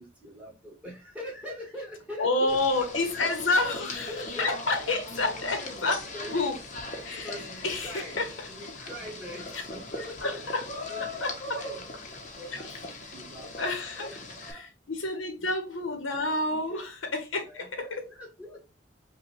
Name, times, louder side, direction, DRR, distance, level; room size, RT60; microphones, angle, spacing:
voice 1, 0.0-2.8 3.2-3.3 4.1-5.0 6.1-6.3 7.2-10.4 10.9-11.0 11.5-14.1 14.4-14.7 15.4-15.5 16.7-16.9 17.5-18.6, equal, 5° right, 1.5 m, -43 dB
voice 2, 2.2-6.6 7.0-7.3 7.6-8.5 10.0-10.7 11.0-11.6 12.5-12.8 13.6-14.1 14.5-18.1, left 2 dB, 80° left, 1.0 m, -30 dB
sound 1, 2.5-14.5, left 2 dB, 40° left, 0.8 m, -39 dB
5.3 x 2.3 x 2.9 m
head